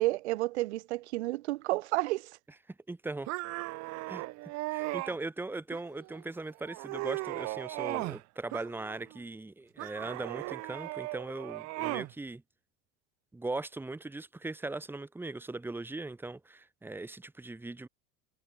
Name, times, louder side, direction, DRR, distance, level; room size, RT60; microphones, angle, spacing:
voice 1, 0.0-2.3, right 18 dB, 90° right, 1.4 m, -31 dB
voice 2, 2.9-3.3 4.1-4.2 4.7-12.4 13.3-17.9, right 2 dB, 5° right, 1.2 m, -39 dB
sound 1, 3.3-5.2 5.7-6.2 6.6-8.2 8.5-9.2 9.8-12.1, right 22 dB, 55° right, 0.8 m, -37 dB
supercardioid pair, 110°, 32 cm